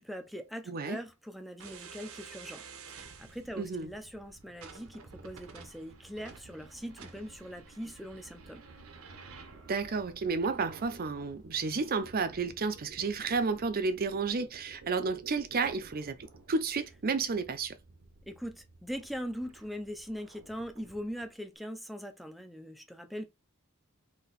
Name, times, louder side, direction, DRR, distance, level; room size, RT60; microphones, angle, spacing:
voice 1, 0.0-2.6 2.9-8.6 18.3-23.3, equal, ahead, 0.6 m, -41 dB
voice 2, 0.7-1.0 3.6-3.9 9.7-16.2 16.5-17.8, right 4 dB, 45° right, 0.6 m, -31 dB
sound 1, 1.6-21.3, right 4 dB, 70° right, 0.9 m, -52 dB
4.1 x 2.9 x 4.0 m
head